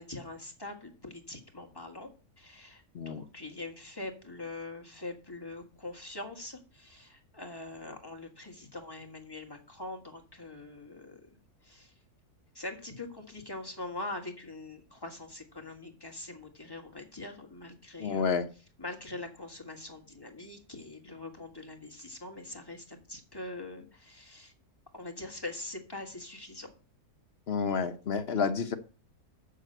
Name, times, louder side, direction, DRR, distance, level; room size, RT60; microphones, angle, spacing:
voice 1, 0.0-2.1 2.4-11.2 11.6-11.9 12.5-18.3 18.8-24.5 24.9-26.7, left 2 dB, 15° left, 2 dB, 1.6 m, -43 dB
voice 2, 18.0-18.5 27.5-28.8, left 5 dB, 55° left, 10 dB, 0.8 m, -29 dB
7.3 x 6.6 x 7.7 m, 0.38 s
omnidirectional pair, 1.7 m